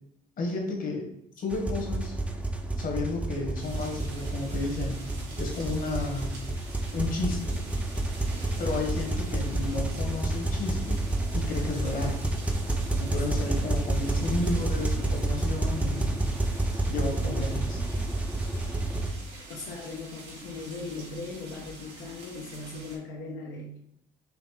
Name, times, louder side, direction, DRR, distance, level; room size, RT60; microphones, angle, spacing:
voice 1, 0.4-1.1 1.4-2.2 2.8-5.1 5.4-6.4 6.9-7.6 8.6-11.0 11.3-12.2 13.0-16.3 16.9-17.8, left 3 dB, 55° left, 1 dB, 1.3 m, -32 dB
sound 1, 1.5-19.1, right 2 dB, 10° right, 0.5 m, -29 dB
sound 2, 3.6-23.0, right 2 dB, 85° right, 1.8 m, -46 dB
voice 2, 12.8-13.1 14.4-14.9 18.5-23.8, left 3 dB, 85° left, -2 dB, 0.7 m, -40 dB
5.1 x 3.0 x 3.2 m, 0.73 s
cardioid pair, 110°, 17 cm